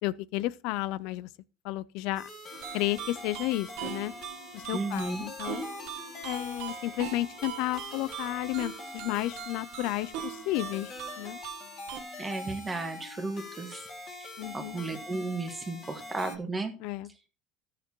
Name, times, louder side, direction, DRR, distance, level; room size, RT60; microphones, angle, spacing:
voice 1, 0.0-1.3 1.6-2.3 2.7-4.1 4.5-5.7 6.2-11.4 14.4-14.8 16.8-17.3, left 16 dB, 70° left, 0.4 m, -32 dB
sound 1, 2.1-16.4, left 2 dB, 40° left, 2.3 m, -44 dB
sound 2, 2.5-12.0, right 11 dB, 75° right, 1.0 m, -42 dB
voice 2, 4.7-5.3 12.2-13.8 14.2-16.7, right 3 dB, 15° right, 1.7 m, -34 dB
13.5 x 6.8 x 2.9 m
supercardioid pair, 110°, 0 cm